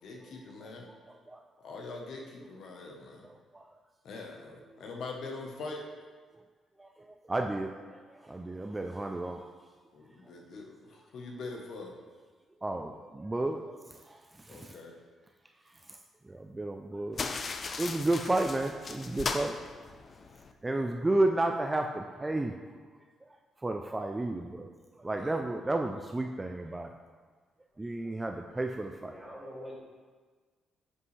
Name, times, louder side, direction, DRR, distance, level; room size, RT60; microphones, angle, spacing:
voice 1, 0.0-0.9 1.6-3.3 4.0-5.9 9.9-11.9 14.5-15.0 20.6-20.9 25.1-25.4, left 3 dB, 70° left, 1 dB, 1.0 m, -43 dB
voice 2, 3.2-3.7 6.8-9.4 12.6-13.8 14.1-14.7 15.9-16.0 16.3-17.2 17.8-19.5 20.6-22.6 23.6-24.7 25.0-26.9 27.8-29.2, right 2 dB, 15° right, 4 dB, 0.4 m, -32 dB
sound 1, 17.1-20.5, left 4 dB, 40° left, 0.5 m, -37 dB
voice 3, 29.0-29.8, equal, ahead, -5 dB, 2.2 m, -44 dB
7.8 x 5.4 x 3.2 m, 1.5 s
cardioid pair, 90°, 0 cm